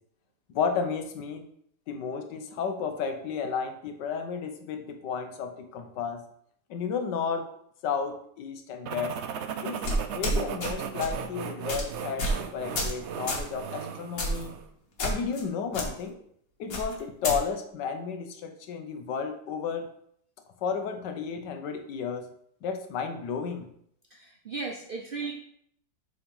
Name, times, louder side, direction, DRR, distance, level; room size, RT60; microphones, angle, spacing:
voice 1, 0.5-1.5 1.9-6.2 6.7-7.5 7.8-9.1 9.6-9.8 10.1-14.5 15.0-16.2 16.6-19.9 20.6-22.3 22.6-23.7, left 6 dB, 75° left, 6 dB, 1.5 m, -32 dB
sound 1, 8.8-14.7, right 7 dB, 85° right, 0.6 m, -36 dB
sound 2, 9.8-10.7 11.0-11.2 11.7-11.8 12.2-12.4 12.7-13.0 13.3-13.5 14.2-14.5 15.0-15.4 15.7-15.9 16.7-17.4, equal, 55° left, 1.9 m, -29 dB
voice 2, 24.1-25.3, right 4 dB, 45° right, 0 dB, 0.7 m, -36 dB
7.1 x 4.0 x 5.3 m, 0.68 s
omnidirectional pair, 1.9 m